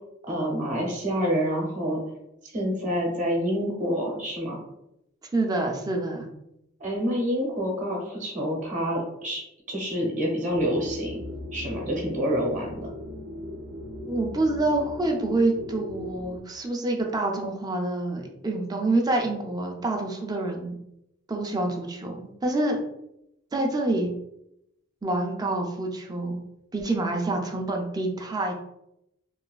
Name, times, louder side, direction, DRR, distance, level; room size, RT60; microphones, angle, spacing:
voice 1, 0.3-2.0 2.5-4.6 6.8-9.4 9.7-11.2 11.5-12.9, equal, 35° right, -1 dB, 0.8 m, -27 dB
voice 2, 5.3-6.3 14.0-20.8 21.3-22.8 23.5-24.1 25.0-26.4 26.7-28.5, right 2 dB, 20° right, 1 dB, 0.4 m, -27 dB
sound 1, 10.5-16.4, left 1 dB, 70° right, 0.5 m, -38 dB
3.1 x 2.3 x 2.3 m, 0.82 s
head